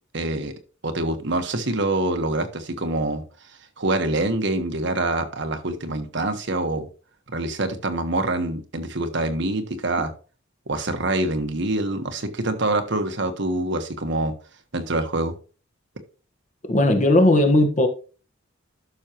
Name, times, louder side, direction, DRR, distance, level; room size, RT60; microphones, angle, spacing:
voice 1, 0.1-0.5 0.8-3.2 3.8-6.9 7.3-10.1 10.7-14.3 14.7-15.3, right 2 dB, 60° right, 1.4 m, -25 dB
voice 2, 16.7-17.9, left 1 dB, 40° left, 1.4 m, -17 dB
12.0 x 6.4 x 3.0 m
head